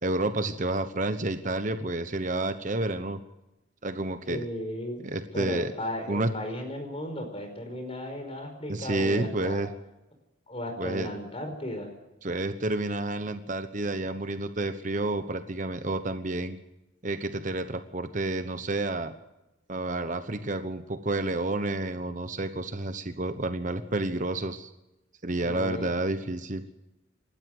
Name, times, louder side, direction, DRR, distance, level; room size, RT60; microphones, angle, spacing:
voice 1, 0.0-3.2 3.8-4.4 5.0-5.7 6.1-6.3 8.7-9.7 10.8-11.1 12.2-16.6 17.0-19.1 19.7-24.7 25.2-26.6, right 2 dB, 40° right, 9 dB, 1.0 m, -30 dB
voice 2, 4.3-5.0 5.3-9.6 10.5-11.9 25.4-25.9, left 1 dB, 30° left, 5 dB, 5.1 m, -35 dB
27.5 x 12.5 x 7.9 m, 0.96 s
head